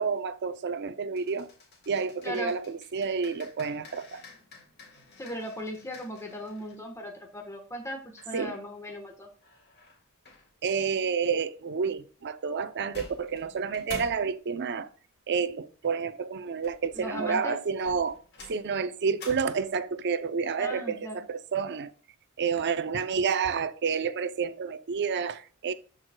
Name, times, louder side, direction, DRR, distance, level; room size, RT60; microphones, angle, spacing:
voice 1, 0.0-1.5 1.9-4.2 8.3-8.5 10.6-14.9 15.3-18.2 18.5-21.9 22.4-25.7, right 5 dB, 50° right, 0.5 m, -29 dB
sound 1, 1.2-6.8 8.2-9.0 9.4-10.5 12.6-12.7 12.9-14.4 16.4-17.2 17.8-19.9, left 3 dB, 50° left, 2.2 m, -49 dB
voice 2, 5.2-9.3 16.9-17.6 20.6-21.1, equal, 15° left, 1.2 m, -37 dB
13.5 x 4.8 x 2.2 m
head